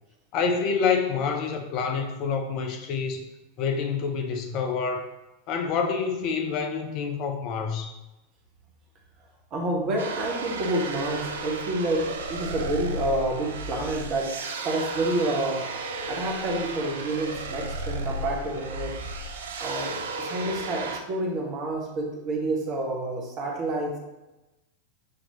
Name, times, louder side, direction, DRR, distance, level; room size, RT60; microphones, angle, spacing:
voice 1, 0.3-3.2 3.6-5.1 5.5-8.0, left 5 dB, 40° left, 4 dB, 0.5 m, -27 dB
voice 2, 9.5-14.3 14.6-15.6 16.1-19.0 19.6-24.0, right 1 dB, 35° right, 0 dB, 1.0 m, -28 dB
sound 1, 10.0-21.0, right 2 dB, 60° right, 0.4 m, -34 dB
6.5 x 2.9 x 2.8 m, 1.0 s
figure-of-eight pair, 90°, 0 cm